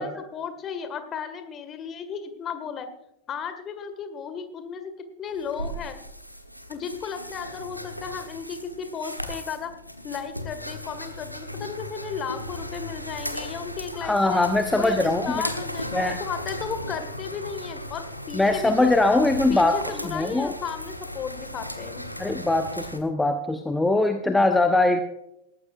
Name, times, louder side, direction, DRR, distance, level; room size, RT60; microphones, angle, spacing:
voice 1, 0.0-2.9 3.3-4.9 5.2-6.0 6.7-9.7 10.0-14.4 14.8-18.9 19.3-22.1, left 6 dB, 30° left, 9 dB, 1.8 m, -34 dB
sound 1, 5.3-23.0, equal, 90° left, 1.3 m, -36 dB
voice 2, 14.0-15.4 15.9-16.2 18.3-20.5 22.2-25.0, left 2 dB, 5° left, 7 dB, 0.9 m, -22 dB
19.0 x 14.5 x 2.5 m, 0.83 s
figure-of-eight pair, 90°, 0 cm